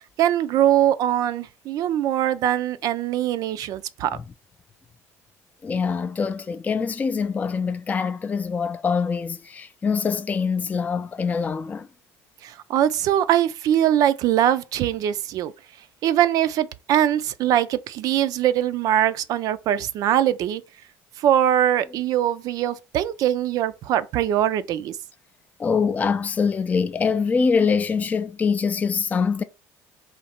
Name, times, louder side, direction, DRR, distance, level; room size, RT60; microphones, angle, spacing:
voice 1, 0.0-4.1 12.4-15.5 16.0-20.6 21.2-25.0, right 11 dB, 60° right, 0.4 m, -22 dB
voice 2, 5.6-11.9 25.6-29.4, left 5 dB, 20° left, 0.4 m, -24 dB
3.2 x 2.8 x 4.2 m
supercardioid pair, 100°, 7 cm